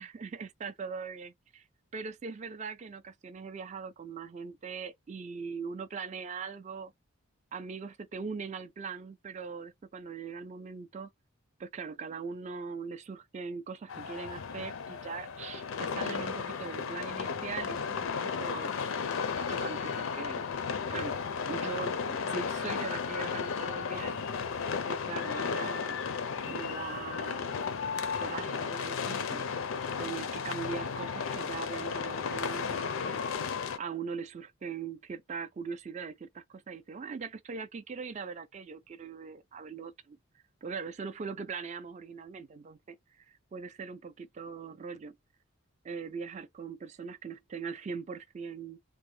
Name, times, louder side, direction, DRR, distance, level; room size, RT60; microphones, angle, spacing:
voice 1, 0.0-1.7 1.9-6.9 7.5-11.1 11.6-18.9 19.5-21.2 21.5-24.5 24.8-26.0 26.5-27.6 28.2-29.5 30.0-33.2 33.8-40.2 40.6-45.2 45.8-48.8, right 5 dB, 35° right, 0.3 m, -41 dB
sound 1, 13.9-33.8, left 6 dB, 65° left, 0.4 m, -34 dB
3.4 x 2.0 x 3.2 m
head